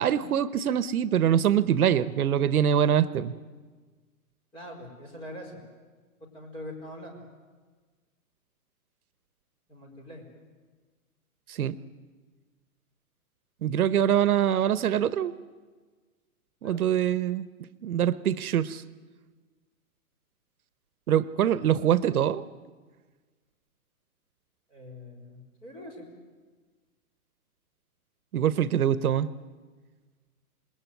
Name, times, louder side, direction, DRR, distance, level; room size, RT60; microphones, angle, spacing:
voice 1, 0.0-3.3 11.5-11.7 13.6-15.3 16.6-17.5 17.8-18.8 21.1-22.4 28.3-29.3, right 9 dB, 75° right, 16 dB, 1.1 m, -24 dB
voice 2, 4.5-5.6 6.2-7.2 9.7-10.2 16.6-16.8 24.7-26.1, left 1 dB, 10° left, 0 dB, 4.3 m, -43 dB
28.0 x 20.0 x 9.3 m, 1.4 s
hypercardioid pair, 175°, 44 cm